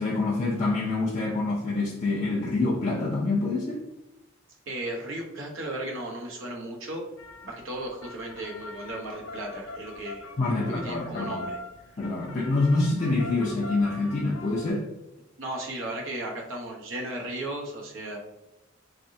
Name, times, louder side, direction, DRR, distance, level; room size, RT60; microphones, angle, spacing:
voice 1, 0.0-3.8 10.4-11.5 12.0-14.9, left 2 dB, 35° left, -6 dB, 0.6 m, -26 dB
voice 2, 4.7-7.0 7.4-10.2 10.7-11.6 15.4-18.2, right 1 dB, 65° right, -1 dB, 0.8 m, -35 dB
sound 1, 7.2-14.7, left 2 dB, 80° left, 0.5 m, -43 dB
3.6 x 3.3 x 2.6 m, 0.93 s
head